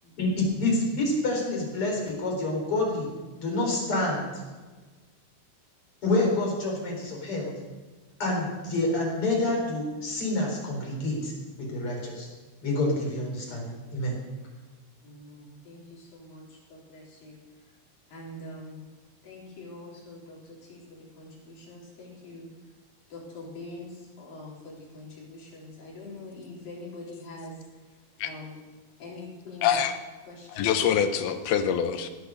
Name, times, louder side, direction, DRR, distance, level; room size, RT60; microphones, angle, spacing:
voice 1, 0.2-3.1 3.4-4.3 6.0-7.5 8.2-11.3 11.6-12.3 12.6-14.1, left 2 dB, 35° left, -1 dB, 4.7 m, -27 dB
voice 2, 15.0-17.4 18.1-18.9 19.2-22.5 23.1-27.6 28.2-28.6 29.0-29.8 30.3-31.0, left 2 dB, 65° left, -5 dB, 5.8 m, -44 dB
voice 3, 29.6-29.9 30.6-32.1, left 8 dB, 80° left, 8 dB, 2.9 m, -25 dB
17.0 x 9.1 x 6.6 m, 1.3 s
omnidirectional pair, 4.4 m